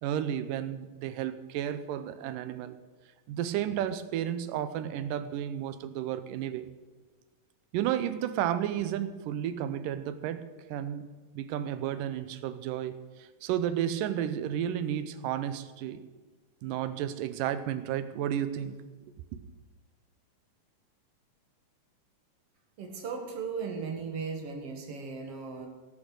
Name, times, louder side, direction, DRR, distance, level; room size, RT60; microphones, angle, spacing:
voice 1, 0.0-2.8 3.3-6.7 7.7-11.1 11.3-16.0 16.6-18.8, right 10 dB, 85° right, 12 dB, 2.3 m, -32 dB
voice 2, 22.8-25.7, right 5 dB, 55° right, 3 dB, 2.3 m, -37 dB
18.5 x 6.5 x 6.2 m, 1.3 s
omnidirectional pair, 3.8 m